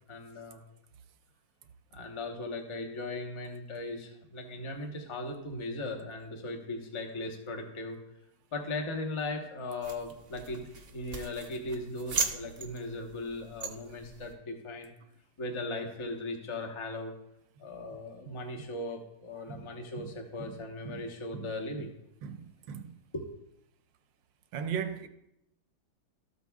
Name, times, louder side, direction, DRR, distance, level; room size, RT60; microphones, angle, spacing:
voice 1, 0.1-0.6 1.9-8.0 8.5-14.9 15.4-17.1 17.6-21.9 23.1-23.4, left 2 dB, 20° left, 0.8 m, -38 dB
sound 1, 9.8-14.3, right 4 dB, 45° right, 0.8 m, -38 dB
voice 2, 19.9-21.1 21.3-21.5 22.2-23.0 24.5-25.1, right 7 dB, 75° right, 1.4 m, -39 dB
13.5 x 8.0 x 2.3 m
omnidirectional pair, 2.1 m